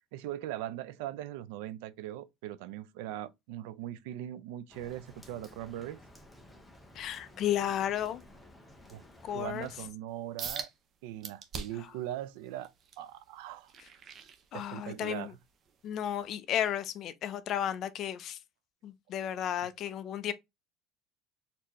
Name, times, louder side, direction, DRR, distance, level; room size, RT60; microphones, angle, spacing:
voice 1, 0.1-6.0 8.9-10.7 11.0-13.7 14.5-15.3, right 13 dB, 90° right, 0.4 m, -40 dB
Rain, 4.7-9.9, left 1 dB, 5° left, 0.7 m, -55 dB
voice 2, 6.9-8.2 9.2-9.7 14.5-15.3 15.8-18.4 18.8-20.3, left 10 dB, 40° left, 0.4 m, -33 dB
sound 1, 10.4-10.7 11.2-11.9 12.4-15.0 15.5-15.7 16.2-16.3, right 6 dB, 35° right, 0.6 m, -42 dB
4.2 x 2.7 x 2.9 m
cardioid pair, 160°, 0 cm